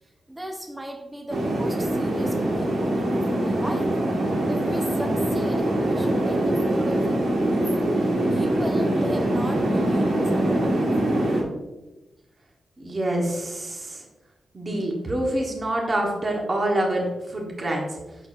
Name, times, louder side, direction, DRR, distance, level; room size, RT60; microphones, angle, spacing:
voice 1, 0.3-3.9 4.5-7.7 8.3-10.9, right 1 dB, 10° right, 1 dB, 0.8 m, -36 dB
sound 1, 1.3-11.4, right 1 dB, 85° right, 1.7 m, -23 dB
voice 2, 12.8-14.0 14.5-18.0, right 1 dB, 35° right, 0 dB, 1.3 m, -26 dB
7.9 x 6.4 x 2.6 m, 1.1 s
wide cardioid pair, 120°, 0 cm